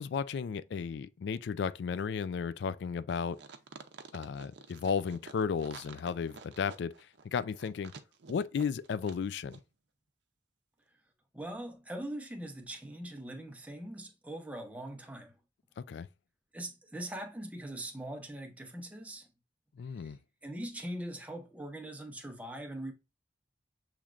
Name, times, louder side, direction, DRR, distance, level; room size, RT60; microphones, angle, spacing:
voice 1, 0.0-3.4 4.1-6.9 7.3-7.9 8.3-9.6 15.8-16.1 19.8-20.2, left 6 dB, 70° left, 0.3 m, -34 dB
sound 1, 3.3-9.2 9.5-9.6, right 5 dB, 70° right, 0.6 m, -50 dB
voice 2, 11.3-15.3 16.5-19.3 20.0-20.1 20.4-22.9, right 1 dB, 10° right, 0.6 m, -41 dB
7.0 x 3.1 x 2.4 m
head